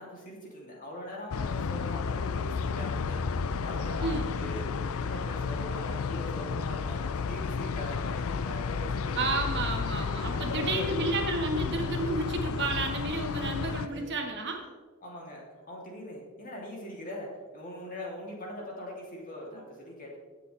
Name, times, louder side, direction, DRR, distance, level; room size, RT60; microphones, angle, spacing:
voice 1, 0.0-9.5 10.2-10.9 13.9-14.1 15.0-20.2, left 1 dB, 40° left, -3 dB, 3.0 m, -41 dB
sound 1, 1.3-13.9, left 5 dB, 70° left, 0.4 m, -32 dB
voice 2, 9.1-14.6, right 2 dB, 55° right, 2 dB, 1.6 m, -31 dB
17.5 x 7.2 x 3.4 m, 1.4 s
head